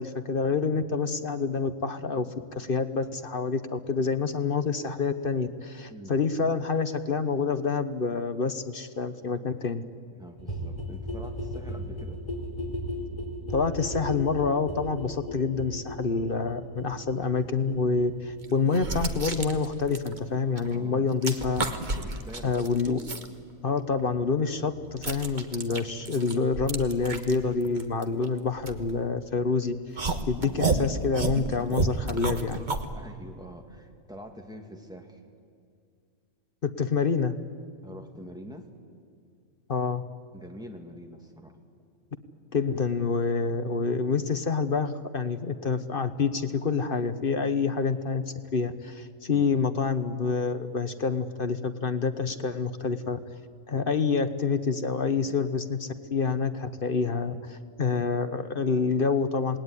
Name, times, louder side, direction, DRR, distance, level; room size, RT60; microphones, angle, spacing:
voice 1, 0.0-9.8 13.5-21.7 22.4-23.0 23.6-32.6 36.6-37.3 39.7-40.0 42.5-48.2 48.5-53.2 53.7-59.6, left 4 dB, 45° left, 10 dB, 1.2 m, -27 dB
voice 2, 5.9-6.2 10.2-12.2 20.6-21.1 21.9-22.6 30.4-30.6 32.9-35.2 37.8-38.7 40.3-41.6 49.3-49.5, equal, 5° right, 3 dB, 2.5 m, -45 dB
sound 1, 10.4-21.9 22.2-22.3 22.5-22.6 22.8-22.9 23.1-23.2 23.4-23.5 23.7-23.8, equal, 25° left, 4.0 m, -37 dB
sound 2, 17.7-17.8 18.4-20.8 21.0-23.3 23.8-29.4 30.0-32.9, right 3 dB, 35° right, 1.5 m, -31 dB
27.5 x 19.5 x 9.8 m, 2.3 s
omnidirectional pair, 1.4 m